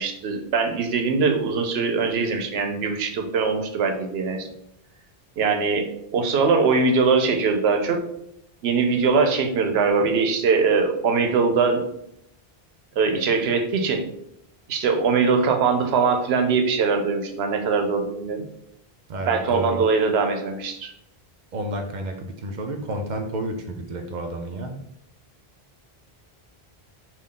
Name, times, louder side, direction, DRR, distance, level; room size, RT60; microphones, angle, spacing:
voice 1, 0.0-4.4 5.4-8.0 8.6-11.8 13.0-14.0 14.7-18.4 19.3-20.9, right 4 dB, 85° right, 5 dB, 0.9 m, -22 dB
voice 2, 19.1-19.8 21.5-24.7, right 1 dB, 55° right, 4 dB, 0.6 m, -30 dB
3.6 x 2.4 x 3.7 m, 0.77 s
omnidirectional pair, 1.0 m